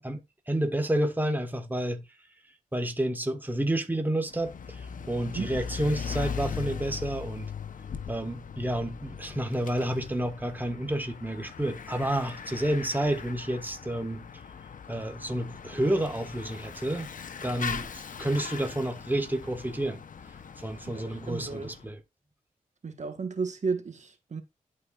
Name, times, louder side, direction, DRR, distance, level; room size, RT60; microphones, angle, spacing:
voice 1, 0.0-2.0 2.7-7.5 8.1-14.2 14.9-17.1 17.4-20.0 20.6-22.0, right 1 dB, 10° right, 1.4 m, -30 dB
Bicycle / Mechanisms, 4.2-21.8, left 6 dB, 65° left, 0.8 m, -40 dB
voice 2, 20.9-21.7 22.8-24.4, right 4 dB, 55° right, 1.3 m, -33 dB
11.0 x 4.6 x 2.4 m
cardioid pair, 45°, 15 cm